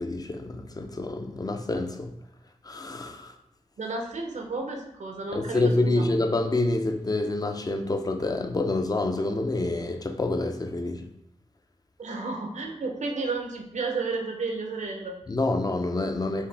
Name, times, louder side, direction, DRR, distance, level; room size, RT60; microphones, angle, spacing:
voice 1, 0.0-2.1 2.7-3.3 5.3-11.0 15.3-16.5, left 2 dB, 30° left, 0.5 m, -27 dB
voice 2, 3.8-6.1 12.0-15.2, right 3 dB, 80° right, 0.7 m, -32 dB
4.7 x 2.7 x 3.3 m
cardioid pair, 55°, 12 cm